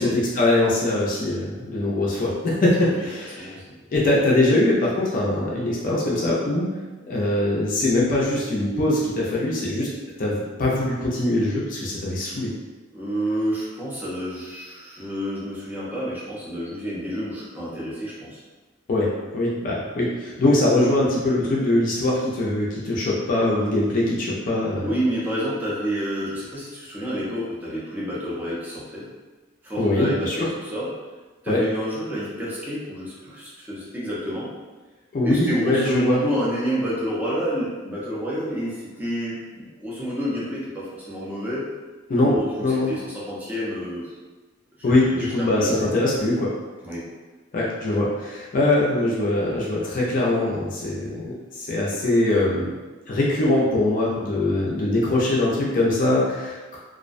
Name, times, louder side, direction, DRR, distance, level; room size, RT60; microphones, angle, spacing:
voice 1, 0.0-3.5 3.9-6.7 7.1-9.9 10.2-12.5 18.9-25.0 29.8-30.4 31.5-31.6 35.1-36.2 42.1-42.3 42.6-42.9 44.8-46.5 47.5-52.7 53.1-56.8, left 2 dB, 45° left, -4 dB, 0.4 m, -22 dB
voice 2, 12.9-18.4 24.8-29.1 29.6-30.9 31.4-34.5 35.2-41.6 42.2-44.1 44.9-45.7 46.8-47.0, equal, 10° right, -7 dB, 0.5 m, -29 dB
2.4 x 2.1 x 2.5 m, 1.2 s
head